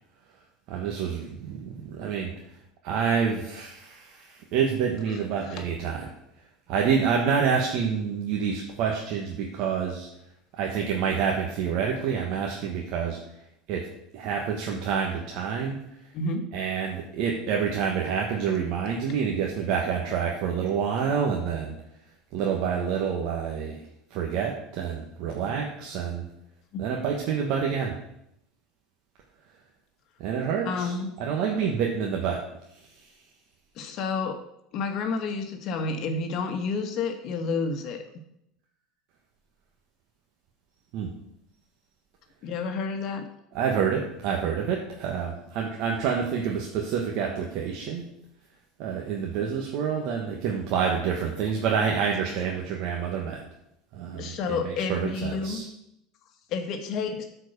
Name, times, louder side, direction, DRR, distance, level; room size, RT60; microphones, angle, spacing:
voice 1, 0.7-2.3 2.8-6.1 6.7-10.1 10.6-13.2 13.7-13.9 14.1-15.8 16.5-21.8 22.3-23.8 24.1-26.2 26.8-27.9 30.2-32.4 40.9-41.1 43.5-48.1 48.8-53.4 53.9-55.6, right 6 dB, 65° right, 0 dB, 1.3 m, -28 dB
voice 2, 16.1-16.5 25.4-25.5 26.7-26.8 30.6-31.1 33.8-34.4 34.7-38.0 42.4-43.3 54.2-55.7 56.5-57.2, left 4 dB, 55° left, 5 dB, 1.2 m, -30 dB
8.5 x 4.6 x 6.7 m, 0.79 s
supercardioid pair, 110°, 0 cm